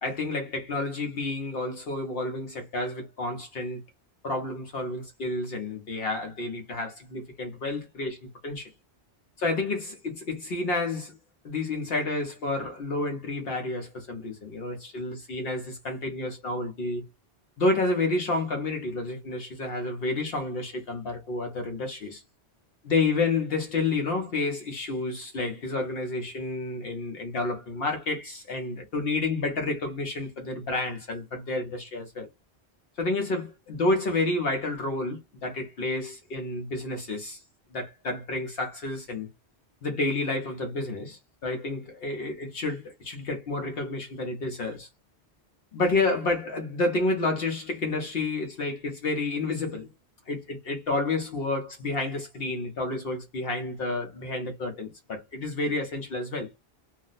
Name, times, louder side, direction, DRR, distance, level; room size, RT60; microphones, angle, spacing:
voice 1, 0.0-3.8 4.2-8.7 9.4-11.2 11.4-17.0 17.6-22.2 22.8-32.3 33.0-37.4 37.7-39.3 39.8-44.9 45.7-49.9 50.3-56.5, left 2 dB, 65° left, 0.9 m, -30 dB
2.4 x 2.0 x 3.8 m
omnidirectional pair, 1.1 m